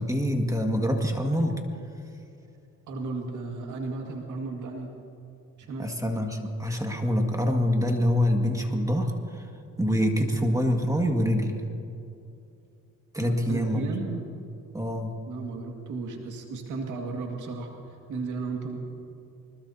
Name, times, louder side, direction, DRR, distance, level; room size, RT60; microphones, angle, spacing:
voice 1, 0.0-1.6 5.8-9.5 9.8-11.6 13.1-13.8 14.7-15.1, equal, 10° right, 2 dB, 2.0 m, -25 dB
voice 2, 2.9-4.9 5.6-5.9 13.2-14.2 15.3-18.8, right 3 dB, 75° right, 1 dB, 2.2 m, -34 dB
24.5 x 21.0 x 2.8 m, 2.7 s
cardioid pair, 90°, 30 cm